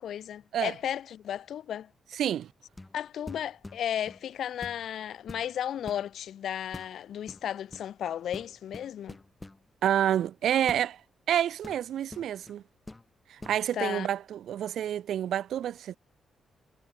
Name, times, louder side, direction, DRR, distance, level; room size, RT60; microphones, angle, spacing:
voice 1, 0.0-1.9 2.9-9.2 13.7-14.1, left 10 dB, 75° left, 2.3 m, -34 dB
voice 2, 2.1-2.5 9.8-11.0 11.3-12.6 13.3-16.0, right 10 dB, 85° right, 1.3 m, -28 dB
sound 1, 2.7-3.0 3.3-4.2 4.6-4.9 5.2-6.1 6.7-7.0 7.3-7.9 8.3-9.6 10.7-10.9 11.6-12.6 12.9-13.1 13.4-13.6, left 2 dB, 15° left, 4.3 m, -45 dB
cardioid pair, 120°, 0 cm